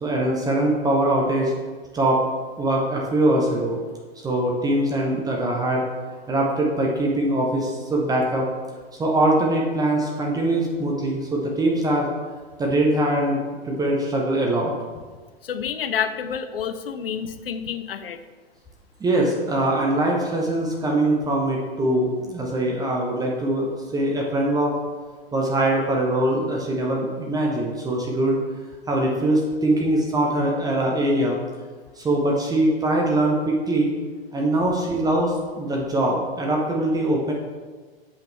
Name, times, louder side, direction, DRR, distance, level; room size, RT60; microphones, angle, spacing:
voice 1, 0.0-1.5 1.9-2.2 2.6-3.8 4.2-5.8 6.3-8.5 9.0-12.1 12.6-13.4 13.6-14.7 19.0-24.7 25.3-28.4 28.9-31.4 32.0-33.9 34.3-37.3, right 1 dB, 10° right, -1 dB, 0.8 m, -22 dB
voice 2, 15.4-18.2, left 8 dB, 65° left, 10 dB, 0.6 m, -29 dB
7.1 x 5.7 x 3.4 m, 1.4 s
figure-of-eight pair, 95°, 31 cm